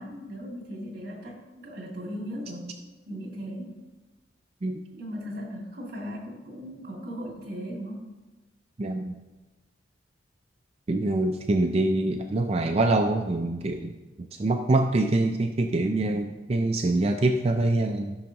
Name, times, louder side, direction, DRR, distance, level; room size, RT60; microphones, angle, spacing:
voice 1, 0.0-2.8 3.1-3.7 4.9-8.0, equal, 55° right, -2 dB, 2.4 m, -37 dB
voice 2, 8.8-9.1 10.9-18.2, right 2 dB, 35° right, 5 dB, 0.4 m, -25 dB
14.0 x 6.2 x 2.9 m, 1.2 s
head